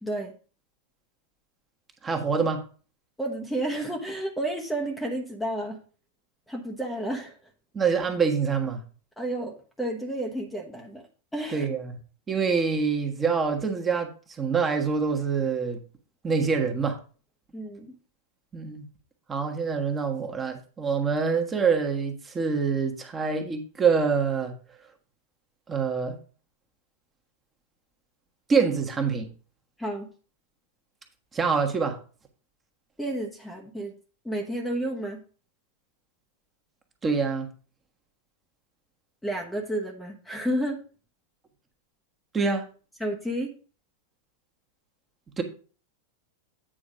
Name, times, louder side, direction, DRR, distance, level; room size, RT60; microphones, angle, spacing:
voice 1, 0.0-0.3 3.2-5.8 6.5-7.4 9.2-11.0 11.3-11.7 17.5-17.9 29.8-30.1 33.0-33.9 34.2-35.2 39.2-40.8 43.0-43.5, right 1 dB, 5° left, 1.0 m, -31 dB
voice 2, 2.0-2.6 7.7-8.8 11.5-12.0 12.3-14.1 14.4-15.8 16.2-17.0 18.5-18.9 19.3-24.5 25.7-26.2 28.5-29.3 31.3-32.0 37.0-37.5 42.3-42.6 45.4-45.5, right 5 dB, 20° right, 1.3 m, -25 dB
8.8 x 4.2 x 5.0 m
figure-of-eight pair, 90°, 0 cm